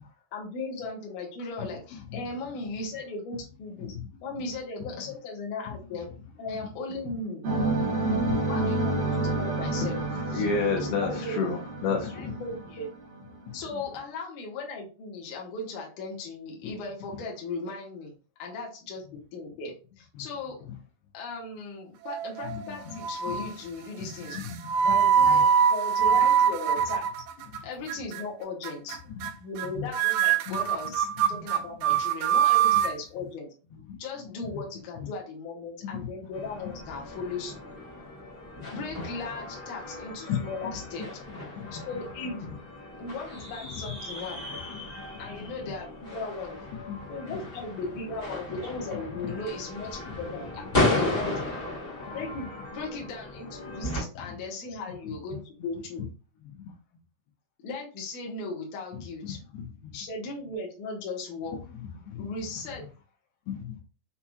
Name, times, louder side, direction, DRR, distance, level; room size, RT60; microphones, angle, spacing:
voice 1, 0.3-3.9 4.2-6.1 6.4-7.4 8.5-10.0 10.8-11.5 12.0-12.9 13.5-18.1 18.4-19.0 19.3-20.6 21.1-24.4 24.8-27.0 27.6-29.0 29.4-33.5 34.0-37.5 38.7-41.2 41.7-42.5 43.0-44.4 45.2-46.6 47.1-51.3 52.1-56.0 57.6-59.4 59.9-61.6 62.2-62.8, left 3 dB, 60° left, -2 dB, 2.5 m, -37 dB
sound 1, 7.4-13.4, right 2 dB, 60° right, 2.1 m, -29 dB
voice 2, 10.3-12.4 13.5-13.6 22.5-23.0 24.0-24.6 27.5-27.6 29.2-29.3 29.8-29.9 30.5-30.6 31.3-31.4 33.9-34.0 35.9-36.1 40.3-40.4 41.6-41.8 44.7-44.8 45.4-45.5 46.7-47.0 50.1-50.2 50.9-51.0 53.7-53.8 59.2-59.3 62.1-62.3 63.5-63.8, left 5 dB, 80° left, 0 dB, 2.8 m, -32 dB
sound 2, 22.1-22.7 23.0-23.5 24.3-27.6 27.9-28.2 28.6-29.0 29.2-29.3 29.6-29.7 29.9-32.9, right 8 dB, 90° right, 2.6 m, -23 dB
sound 3, 36.3-54.0, left 1 dB, 20° left, 1.7 m, -35 dB
6.9 x 2.9 x 2.3 m, 0.35 s
omnidirectional pair, 4.6 m